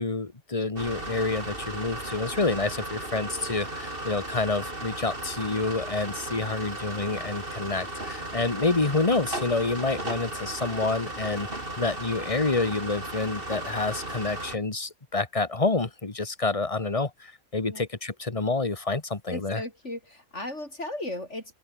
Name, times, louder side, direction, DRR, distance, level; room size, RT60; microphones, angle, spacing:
voice 1, 0.0-11.5 11.8-19.6, left 3 dB, 25° left, 1.8 m, -28 dB
sound 1, 0.8-14.6, right 1 dB, 40° right, 6.0 m, -36 dB
voice 2, 19.3-21.5, left 1 dB, 55° left, 6.1 m, -36 dB
open air
omnidirectional pair, 1.5 m